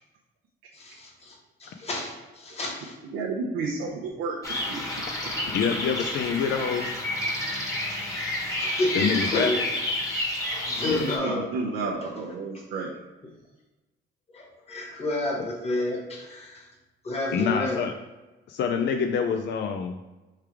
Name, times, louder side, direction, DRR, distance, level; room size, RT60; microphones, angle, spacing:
voice 1, 0.7-3.0 7.9-8.0 8.6-9.6 10.5-11.5 14.3-16.7 17.0-17.8, left 2 dB, 30° left, -1 dB, 1.3 m, -30 dB
voice 2, 3.0-4.4 4.7-4.8 10.9-12.9, right 4 dB, 85° right, -2 dB, 0.6 m, -31 dB
sound 1, 4.4-11.2, left 1 dB, 15° left, 1.1 m, -30 dB
voice 3, 5.5-6.9 8.9-9.5 10.9-11.2 17.3-18.0 18.5-20.0, left 6 dB, 60° left, 5 dB, 0.4 m, -26 dB
3.5 x 3.3 x 4.6 m, 1.1 s
cardioid pair, 90°, 20 cm